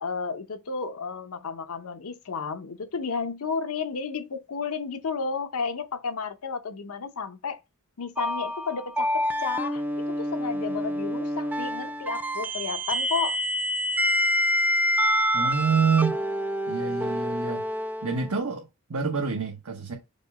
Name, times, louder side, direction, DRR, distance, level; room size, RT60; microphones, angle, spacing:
voice 1, 0.0-7.6 8.0-9.8 10.2-13.4, left 5 dB, 85° left, 0.7 m, -32 dB
sound 1, 8.2-18.4, equal, 10° right, 0.3 m, -27 dB
voice 2, 15.3-16.1 16.7-17.6 18.0-19.9, right 5 dB, 85° right, 0.9 m, -27 dB
5.2 x 2.2 x 4.0 m
head